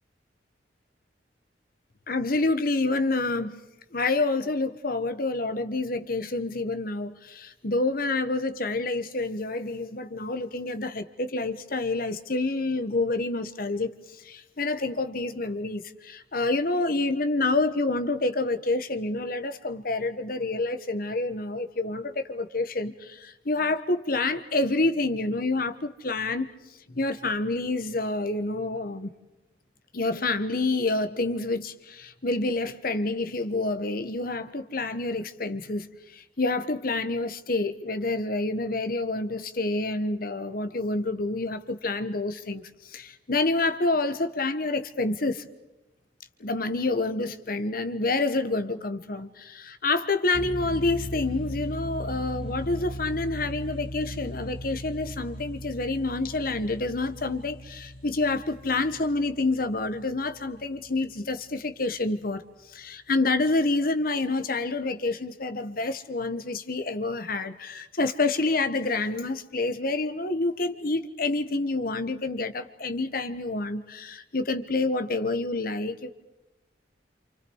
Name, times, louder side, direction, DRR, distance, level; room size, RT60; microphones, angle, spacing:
voice 1, 2.1-3.6 3.9-26.5 26.9-29.1 29.9-45.4 46.4-62.4 62.7-76.1, left 2 dB, 50° left, 10 dB, 1.4 m, -28 dB
sound 1, 50.3-61.2, equal, 30° left, 6.7 m, -38 dB
28.5 x 28.0 x 4.8 m, 0.98 s
head